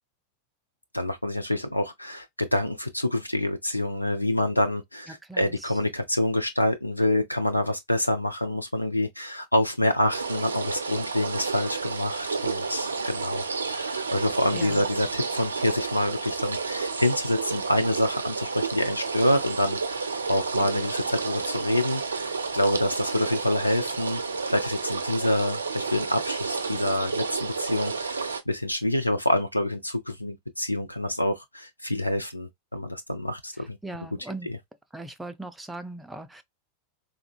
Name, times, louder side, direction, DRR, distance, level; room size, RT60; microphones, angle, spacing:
voice 1, 0.9-13.4 13.7-24.2 24.5-33.8, left 1 dB, 85° left, 0.4 m, -27 dB
voice 2, 5.1-5.8 14.5-14.8 33.6-34.5 34.9-36.4, right 2 dB, 5° right, 0.4 m, -40 dB
sound 1, 10.1-28.4, right 4 dB, 75° right, 0.4 m, -31 dB
3.7 x 2.1 x 2.2 m
figure-of-eight pair, 90°, 0 cm